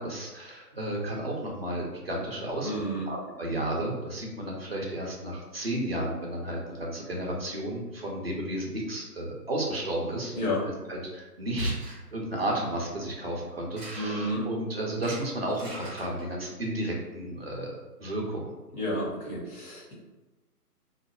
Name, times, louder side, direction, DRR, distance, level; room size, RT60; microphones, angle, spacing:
voice 1, 0.0-2.7 3.1-18.5, right 1 dB, 40° right, -2 dB, 0.5 m, -33 dB
voice 2, 2.6-3.1 10.3-10.6 14.0-14.4 18.7-19.9, equal, 60° left, -6 dB, 1.2 m, -31 dB
sound 1, 11.6-12.0 13.8-14.2 14.9-16.2, right 1 dB, 20° left, 0.7 m, -42 dB
2.2 x 2.1 x 2.9 m, 1.1 s
figure-of-eight pair, 145°, 48 cm